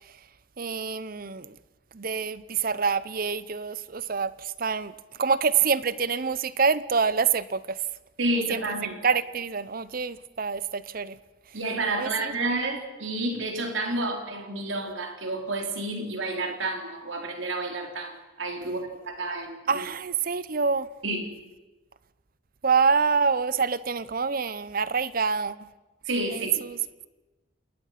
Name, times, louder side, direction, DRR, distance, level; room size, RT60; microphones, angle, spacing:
voice 1, 0.6-1.6 1.9-4.9 5.2-7.8 8.5-8.6 9.0-11.2 12.0-12.3 18.6-18.7 19.7-20.9 22.6-25.7 26.3-26.8, right 5 dB, 45° right, 17 dB, 0.7 m, -26 dB
voice 2, 8.2-9.0 11.5-19.8 21.0-21.3 26.1-26.6, right 2 dB, 75° right, 3 dB, 3.8 m, -30 dB
27.5 x 19.5 x 5.9 m, 1.2 s
head